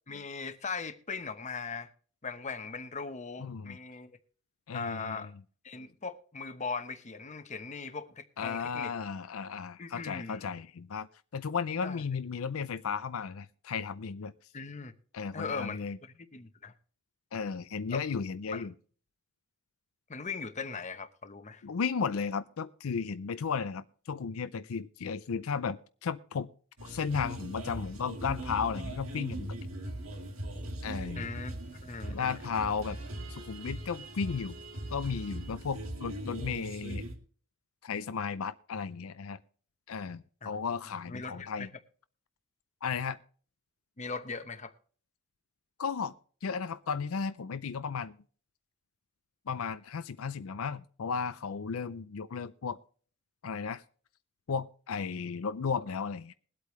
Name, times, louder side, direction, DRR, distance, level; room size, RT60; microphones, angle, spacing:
voice 1, 0.1-1.9 2.2-4.1 4.7-5.3 5.6-8.9 9.8-10.5 11.8-12.0 14.5-14.9 15.3-15.8 16.1-16.7 17.9-18.0 18.5-18.6 20.1-21.6 31.2-32.7 40.4-40.6 41.1-41.7 44.0-44.7, left 4 dB, 35° left, 0.9 m, -39 dB
voice 2, 3.4-3.8 4.7-5.3 8.4-11.1 11.3-14.3 15.1-16.0 17.3-18.7 21.6-26.5 26.8-29.6 30.8-31.3 32.1-33.0 33.3-34.5 34.9-37.0 37.8-39.4 39.9-41.7 42.8-43.2 45.8-46.1 46.4-48.2 49.5-52.8 53.4-53.8 54.5-56.3, left 6 dB, 80° left, 0.5 m, -34 dB
sound 1, 26.8-37.1, right 1 dB, 75° right, 2.0 m, -40 dB
21.5 x 8.3 x 3.1 m
head